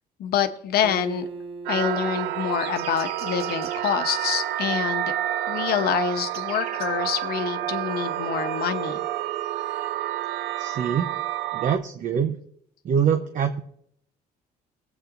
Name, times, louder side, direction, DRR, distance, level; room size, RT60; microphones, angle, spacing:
voice 1, 0.2-1.3 1.7-5.1 5.5-9.0, left 8 dB, 65° left, 9 dB, 0.9 m, -26 dB
Acoustic guitar, 0.8-4.2, right 4 dB, 35° right, 1.2 m, -41 dB
sound 1, 1.7-11.8, right 12 dB, 90° right, 0.6 m, -29 dB
sound 2, 2.5-3.9 6.0-6.9, right 5 dB, 65° right, 2.6 m, -40 dB
voice 2, 10.6-11.1 11.5-12.3 12.8-13.6, right 7 dB, 50° right, 6 dB, 0.8 m, -24 dB
18.5 x 8.3 x 2.6 m, 0.69 s
cardioid pair, 110°, 17 cm